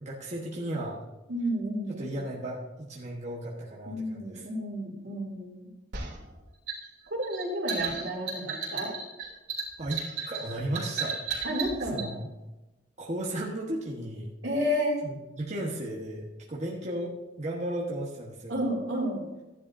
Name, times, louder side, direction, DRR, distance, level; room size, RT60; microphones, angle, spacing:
voice 1, 0.0-1.0 1.9-4.4 9.8-11.2 11.9-12.3 13.0-14.3 15.0-18.6, right 1 dB, 40° right, -4 dB, 1.4 m, -35 dB
voice 2, 1.3-2.2 3.8-5.7 7.1-8.9 11.4-12.1 14.4-15.0 18.5-19.2, equal, 85° right, -2 dB, 3.0 m, -31 dB
sound 1, 5.9-12.1, right 5 dB, 70° right, 3.1 m, -34 dB
15.0 x 10.5 x 2.7 m, 1.0 s
head